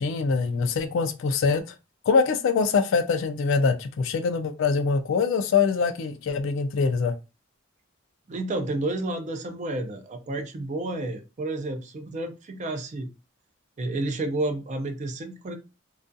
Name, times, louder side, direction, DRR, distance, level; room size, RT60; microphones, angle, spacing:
voice 1, 0.0-1.6 2.1-7.2, left 5 dB, 65° left, 0.3 m, -24 dB
voice 2, 8.3-13.1 13.8-15.6, right 2 dB, 35° right, 0.4 m, -30 dB
2.3 x 2.3 x 2.5 m
head